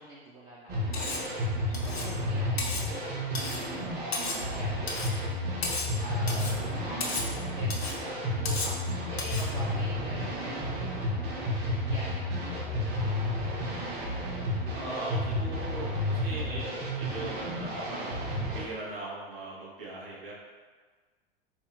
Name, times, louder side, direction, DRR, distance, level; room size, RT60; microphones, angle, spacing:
voice 1, 0.0-5.5 6.0-6.4 6.7-13.8, right 1 dB, 15° right, -6 dB, 0.3 m, -46 dB
sound 1, 0.7-18.6, left 1 dB, 30° right, 0.8 m, -32 dB
Cutlery silverware, 0.9-1.3 1.7-2.1 2.6-2.9 3.3-3.7 4.1-4.5 4.9-5.2 5.6-6.0 6.3-6.6 7.0-7.3 7.7-8.0 8.5-8.8 9.2-9.5, left 3 dB, 85° left, 0.5 m, -34 dB
voice 2, 1.8-2.2 6.2-6.9 14.7-20.3, right 2 dB, 65° right, -5 dB, 1.0 m, -40 dB
3.5 x 2.7 x 2.3 m, 1.4 s
figure-of-eight pair, 90°, 30 cm